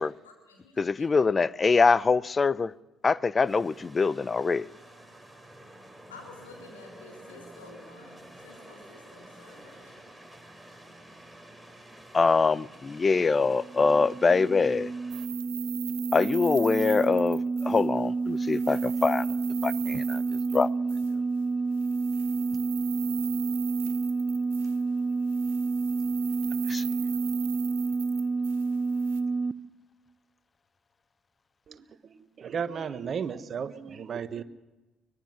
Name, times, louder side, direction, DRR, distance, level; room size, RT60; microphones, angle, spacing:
voice 1, 0.0-1.1 6.1-9.9, left 3 dB, 85° left, 4.2 m, -51 dB
voice 2, 0.8-2.7 3.0-4.7 12.1-14.9 16.1-19.2 19.6-20.2 20.5-20.7 26.7-26.8, left 4 dB, 30° left, 0.6 m, -24 dB
sound 1, 3.4-15.3, right 1 dB, ahead, 4.4 m, -50 dB
sound 2, 13.3-29.5, right 4 dB, 30° right, 0.7 m, -29 dB
sound 3, 15.1-18.1 18.4-21.2 21.7-25.0 25.3-29.2, right 17 dB, 80° right, 0.9 m, -42 dB
voice 3, 32.1-34.4, right 7 dB, 45° right, 1.4 m, -34 dB
24.0 x 20.0 x 6.2 m
hypercardioid pair, 50°, 0 cm